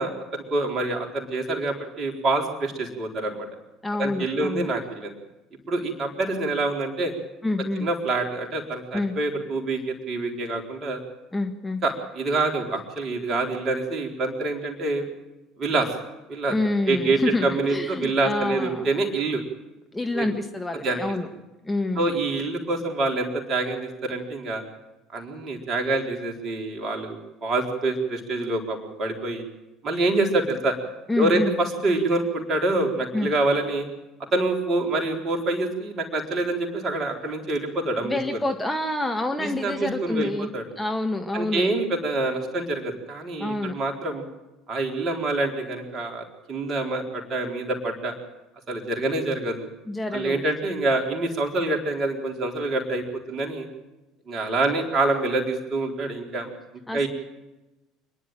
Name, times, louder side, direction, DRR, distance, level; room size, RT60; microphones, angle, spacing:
voice 1, 0.0-3.5 4.0-5.1 5.7-7.1 7.8-11.0 11.8-15.0 15.6-15.9 16.3-16.5 16.9-19.4 20.1-20.2 20.8-21.0 21.9-24.6 25.1-29.4 29.8-30.7 31.2-33.9 34.3-38.2 39.4-40.6 41.3-44.2 44.7-48.1 48.7-49.7 50.1-53.7 54.3-56.5 56.9-57.1, right 2 dB, 35° right, 2 dB, 4.3 m, -26 dB
voice 2, 3.8-4.7 7.4-7.9 8.9-9.2 11.3-11.8 16.5-18.9 19.9-21.3 21.6-22.1 31.1-31.5 33.1-33.3 38.0-40.5 40.8-41.7 43.4-43.8 49.9-50.4 56.9-57.1, left 2 dB, 10° left, 4 dB, 1.6 m, -27 dB
26.5 x 11.0 x 9.0 m, 1.0 s
figure-of-eight pair, 60°, 0 cm